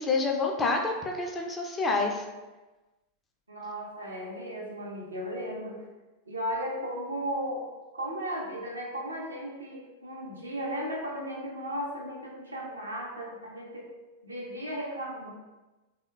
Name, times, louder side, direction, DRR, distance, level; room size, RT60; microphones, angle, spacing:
voice 1, 0.0-2.2, left 3 dB, 15° left, 1 dB, 0.3 m, -28 dB
voice 2, 3.5-5.8 6.3-7.7 7.9-13.9 14.2-15.3, equal, 75° right, -2 dB, 0.5 m, -35 dB
2.9 x 2.0 x 2.3 m, 1.1 s
figure-of-eight pair, 90°, 0 cm